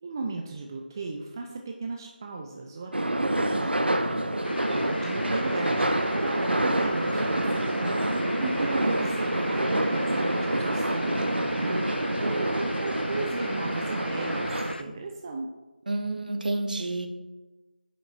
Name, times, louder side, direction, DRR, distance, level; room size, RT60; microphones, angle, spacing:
voice 1, 0.0-7.9 8.2-15.5, right 3 dB, 20° right, 2 dB, 0.4 m, -36 dB
sound 1, 2.9-14.7, right 1 dB, 85° right, 0.6 m, -27 dB
sound 2, 4.4-14.8, left 2 dB, 70° left, 0.4 m, -40 dB
voice 2, 7.7-8.2 15.9-17.1, right 2 dB, 55° right, 5 dB, 0.9 m, -30 dB
8.6 x 6.0 x 2.5 m, 1.2 s
figure-of-eight pair, 160°, 5 cm